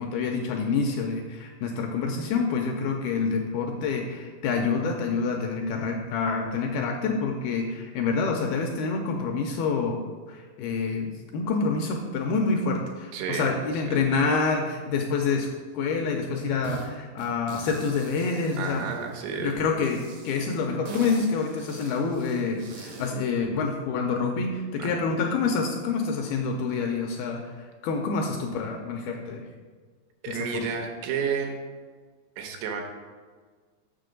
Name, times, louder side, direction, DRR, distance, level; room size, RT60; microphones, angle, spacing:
voice 1, 0.0-10.0 10.3-18.9 19.4-29.5 30.3-30.6, left 4 dB, 80° left, 2 dB, 2.3 m, -27 dB
voice 2, 13.1-13.5 13.9-14.0 18.6-19.6 24.8-24.9 30.2-31.5 32.4-32.8, right 6 dB, 85° right, 3 dB, 3.2 m, -31 dB
sound 1, 16.6-16.9 17.2-19.3 19.8-23.2, right 4 dB, 65° right, 1.8 m, -42 dB
6.8 x 6.8 x 5.1 m, 1.5 s
omnidirectional pair, 4.9 m